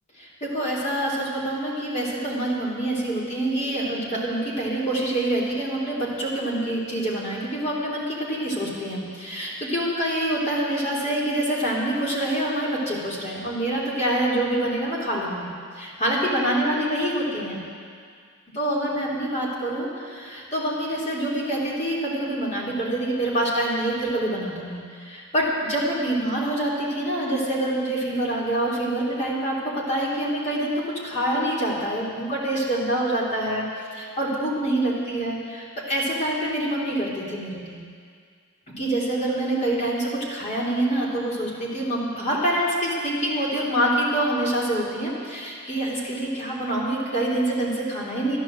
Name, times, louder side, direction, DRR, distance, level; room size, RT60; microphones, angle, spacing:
voice 1, 0.2-15.5 15.7-17.6 18.5-30.7 31.0-33.6 33.9-37.8 38.8-48.4, right 1 dB, 35° left, -5 dB, 3.2 m, -26 dB
12.5 x 10.5 x 7.5 m, 2.1 s
head